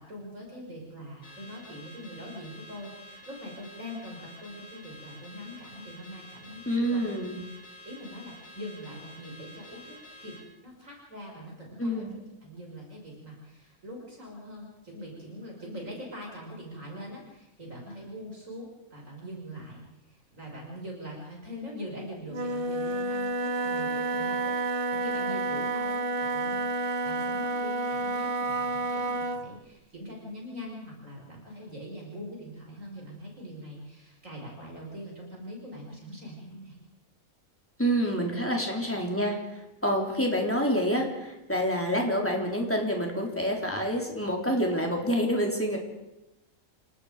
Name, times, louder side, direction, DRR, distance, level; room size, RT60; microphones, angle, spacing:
voice 1, 0.1-7.1 7.8-9.9 10.2-12.1 12.4-19.8 20.1-26.1 26.3-36.8, equal, 65° right, -1 dB, 5.8 m, -43 dB
Car / Alarm, 1.2-10.5, equal, 70° left, 4.7 m, -49 dB
voice 2, 6.7-7.4 11.8-12.2 37.8-39.3 39.8-45.8, equal, 10° left, 0 dB, 3.7 m, -27 dB
Wind instrument woodwind instrument, 22.3-29.5, right 2 dB, 40° right, 1.2 m, -30 dB
28.5 x 18.5 x 5.0 m, 0.96 s
omnidirectional pair, 1.5 m